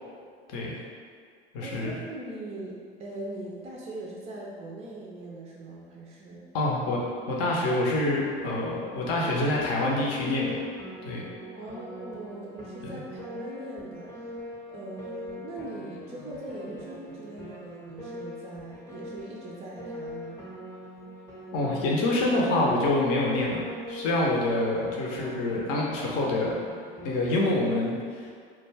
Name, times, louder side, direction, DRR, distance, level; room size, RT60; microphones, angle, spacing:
voice 1, 0.5-0.8 1.5-2.0 6.5-7.0 7.3-10.6 11.0-11.3 12.8-13.0 21.5-23.6 23.9-26.6 27.0-28.3, left 2 dB, 50° left, -3 dB, 0.6 m, -26 dB
voice 2, 1.6-6.5 11.5-14.4 14.7-20.4, right 2 dB, 20° right, -3 dB, 0.4 m, -40 dB
Piano, 8.4-27.6, left 1 dB, 10° left, 0.7 m, -42 dB
2.2 x 2.2 x 3.2 m, 2.1 s
hypercardioid pair, 80°, 29 cm